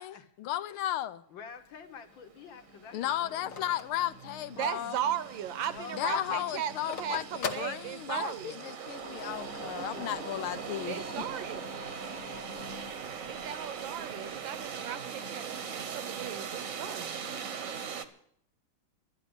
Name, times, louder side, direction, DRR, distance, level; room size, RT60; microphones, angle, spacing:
voice 1, 0.0-1.2 2.9-5.0 5.9-11.2, left 13 dB, 90° left, 1.6 m, -35 dB
voice 2, 1.3-3.6 5.7-6.2, left 6 dB, 70° left, 1.9 m, -48 dB
Telephone, 1.5-4.9 5.3-5.4 5.6-8.5, left 6 dB, 50° left, 1.2 m, -41 dB
sound 1, 2.1-2.2 2.4-18.0, right 7 dB, 50° right, 1.1 m, -41 dB
voice 3, 4.5-8.6 10.9-11.8 13.3-17.2, right 9 dB, 70° right, 1.5 m, -37 dB
sound 2, 8.8-14.7, left 3 dB, 10° left, 0.8 m, -47 dB
12.0 x 10.5 x 8.0 m
omnidirectional pair, 2.3 m